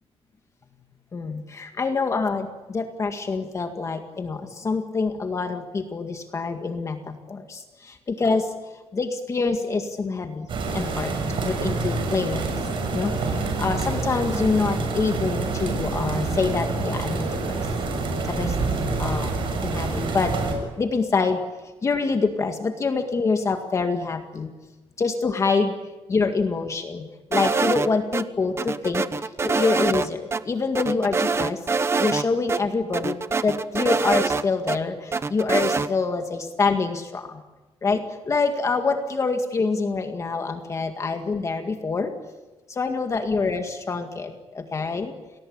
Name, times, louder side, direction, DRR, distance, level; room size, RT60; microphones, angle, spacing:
voice 1, 1.1-8.5 8.9-10.5 10.7-12.5 12.9-17.7 18.3-18.6 19.0-24.5 25.0-25.7 26.1-33.2 33.4-37.4 37.8-42.1 42.7-45.1, left 4 dB, 30° left, 5 dB, 1.9 m, -26 dB
sound 1, 10.5-20.5, right 3 dB, 55° right, 7.4 m, -27 dB
sound 2, 27.3-28.2 28.6-30.1 30.3-30.4 30.7-32.2 32.5-32.6 32.9-34.8 35.1-35.9, right 4 dB, 25° right, 1.0 m, -24 dB
30.0 x 20.5 x 8.8 m, 1.2 s
cardioid pair, 150°, 10 cm